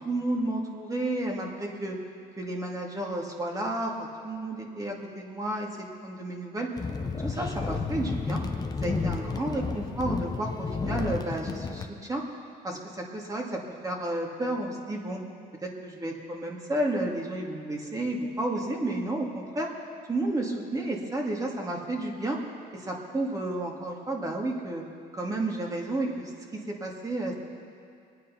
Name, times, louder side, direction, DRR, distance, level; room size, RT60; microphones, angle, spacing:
voice 1, 0.0-2.0 2.4-5.7 6.0-6.7 7.2-8.4 8.8-9.6 10.0-12.2 12.6-15.2 15.6-19.7 20.1-22.4 22.7-24.8 25.1-27.3, right 1 dB, 20° right, 0 dB, 2.4 m, -31 dB
sound 1, 6.8-11.9, left 4 dB, 25° left, 1.0 m, -31 dB
23.0 x 9.4 x 5.7 m, 2.3 s
cardioid pair, 110°, 17 cm